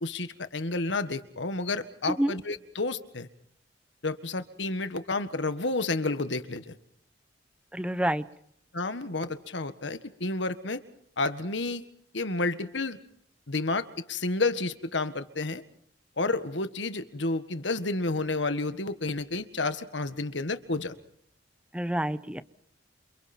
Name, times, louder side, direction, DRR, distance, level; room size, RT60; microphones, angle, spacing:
voice 1, 0.0-3.3 4.0-6.7 8.7-10.8 11.2-11.8 12.1-13.0 13.5-15.6 16.2-20.9, left 3 dB, 70° left, 11 dB, 1.7 m, -30 dB
voice 2, 7.7-8.2 21.7-22.4, right 1 dB, 5° right, 13 dB, 0.8 m, -28 dB
29.0 x 28.5 x 4.5 m, 0.69 s
head